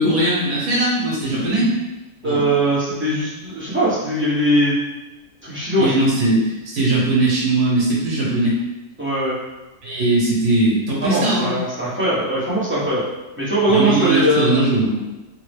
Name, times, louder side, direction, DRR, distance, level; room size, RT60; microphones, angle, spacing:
voice 1, 0.0-1.7 2.2-2.6 5.8-8.6 9.8-11.5 13.7-15.0, right 2 dB, 60° right, -5 dB, 1.5 m, -19 dB
voice 2, 2.2-4.8 5.4-6.0 9.0-9.3 11.0-13.0 13.4-14.6, right 1 dB, 15° right, -10 dB, 0.4 m, -20 dB
3.6 x 2.0 x 3.3 m, 1.1 s
omnidirectional pair, 1.9 m